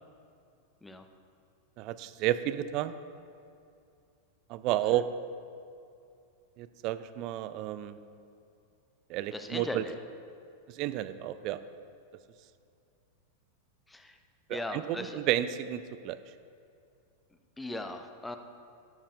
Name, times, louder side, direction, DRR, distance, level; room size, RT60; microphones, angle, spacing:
voice 1, 1.8-3.0 4.5-5.1 6.6-8.0 9.1-9.8 10.7-11.6 14.5-16.2, right 13 dB, 40° right, 13 dB, 0.4 m, -31 dB
voice 2, 9.3-9.9 13.9-14.2 14.5-15.2 17.6-18.4, left 2 dB, 5° left, 7 dB, 0.6 m, -38 dB
12.5 x 12.5 x 2.4 m, 2.5 s
figure-of-eight pair, 90°, 0 cm